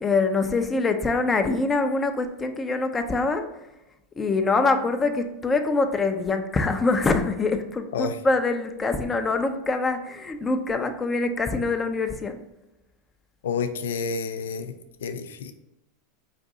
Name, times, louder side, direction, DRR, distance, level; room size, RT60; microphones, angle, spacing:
voice 1, 0.0-3.5 4.2-12.4, left 3 dB, 20° left, 7 dB, 0.5 m, -24 dB
voice 2, 13.4-14.7 15.0-15.5, left 5 dB, 80° left, 9 dB, 0.4 m, -29 dB
5.0 x 2.6 x 3.7 m, 0.96 s
hypercardioid pair, 100°, 0 cm